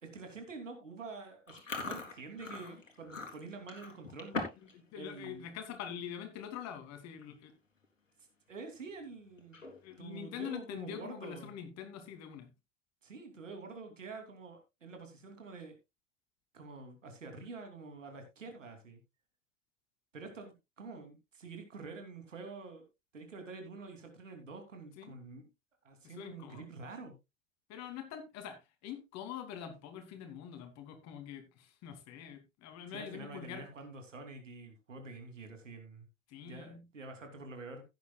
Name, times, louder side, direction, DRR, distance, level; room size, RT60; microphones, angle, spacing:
voice 1, 0.0-4.4 4.9-5.5 8.5-9.6 10.0-11.6 13.0-15.7 16.5-19.0 20.1-22.8 23.1-25.4 25.8-27.2 32.9-36.0 36.4-37.8, right 3 dB, 75° right, 2.9 m, -47 dB
Chewing mastication, 1.5-4.7 5.0-5.3 5.8-6.0 6.8-6.9 7.1-7.4 7.8-7.9 9.4-10.0, left 3 dB, 80° left, 2.8 m, -41 dB
voice 2, 4.7-7.5 9.8-12.5 25.0-25.1 26.0-26.6 27.7-33.6 36.3-36.9, left 9 dB, 45° left, 2.7 m, -45 dB
16.5 x 9.1 x 2.3 m
figure-of-eight pair, 75°, 38 cm